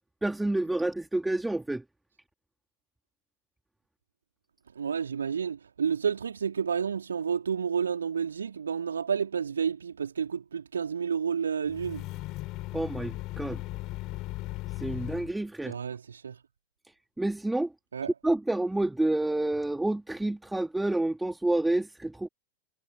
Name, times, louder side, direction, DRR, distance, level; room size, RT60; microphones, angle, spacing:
voice 1, 0.2-1.8 12.7-13.6 14.8-15.7 17.2-17.7 18.2-22.3, right 2 dB, 5° right, 3.5 m, -29 dB
voice 2, 4.7-12.0 15.6-16.4 17.9-18.1, right 7 dB, 70° right, 2.9 m, -30 dB
sound 1, 11.7-15.3, left 19 dB, 40° left, 4.2 m, -37 dB
figure-of-eight pair, 90°, 0 cm